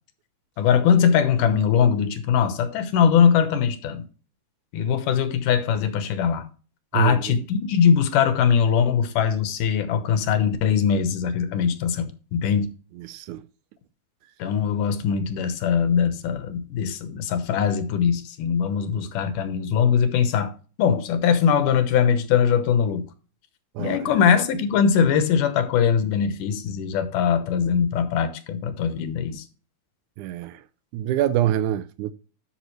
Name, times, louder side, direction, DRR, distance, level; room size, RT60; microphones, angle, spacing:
voice 1, 0.6-4.1 4.7-6.5 6.9-12.7 14.4-20.5 20.8-23.1 23.8-29.4, left 7 dB, 85° left, 2.6 m, -21 dB
voice 2, 6.9-7.4 13.0-13.4 23.8-24.1 30.2-30.6 30.9-32.1, right 12 dB, 80° right, 1.9 m, -25 dB
11.5 x 6.0 x 3.1 m
omnidirectional pair, 3.6 m